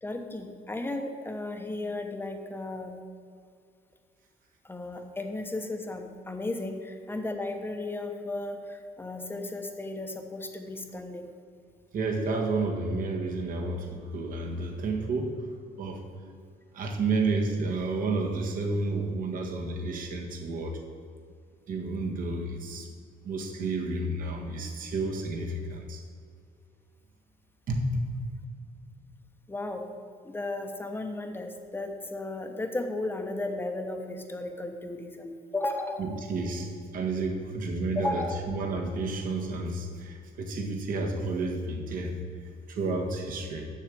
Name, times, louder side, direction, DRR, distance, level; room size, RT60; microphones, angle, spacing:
voice 1, 0.0-3.0 4.7-11.3 23.6-23.7 29.5-29.8 30.2-36.2 37.9-38.5, left 2 dB, 15° left, 4 dB, 1.1 m, -35 dB
voice 2, 11.9-15.5 15.8-16.0 16.7-20.8 21.7-22.9 23.2-26.0 27.7-28.3 36.0-42.2 42.7-43.7, right 3 dB, 55° right, 2 dB, 1.7 m, -31 dB
7.4 x 6.6 x 7.6 m, 2.2 s
cardioid pair, 110°, 17 cm